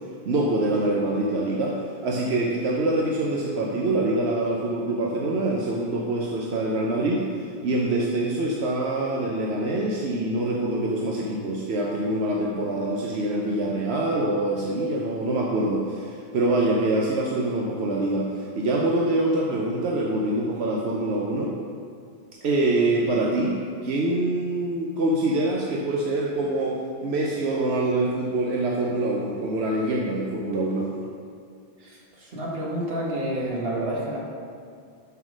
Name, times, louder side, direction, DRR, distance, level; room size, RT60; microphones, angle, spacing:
voice 1, 0.3-21.5 22.4-23.6 23.8-31.0, right 2 dB, 90° right, -2 dB, 1.0 m, -25 dB
voice 2, 31.8-34.2, right 1 dB, 70° right, -3 dB, 1.6 m, -29 dB
5.8 x 5.6 x 6.1 m, 2.3 s
omnidirectional pair, 1.1 m